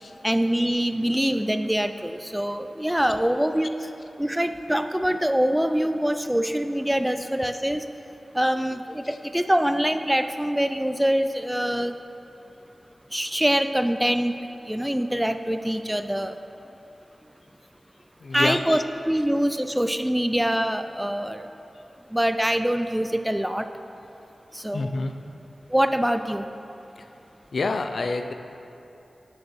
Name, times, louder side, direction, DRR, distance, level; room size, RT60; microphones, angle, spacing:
voice 1, 0.2-3.8 4.2-7.8 8.3-12.0 13.1-14.3 14.7-16.4 18.3-21.5 22.1-23.7 24.5-25.1 25.7-26.5, equal, 5° right, 9 dB, 0.3 m, -24 dB
voice 2, 18.2-18.8 21.7-21.8 24.7-25.2 27.0-27.1 27.5-28.3, left 3 dB, 70° left, 8 dB, 0.5 m, -29 dB
9.5 x 6.6 x 6.4 m, 2.9 s
wide cardioid pair, 110°, 0 cm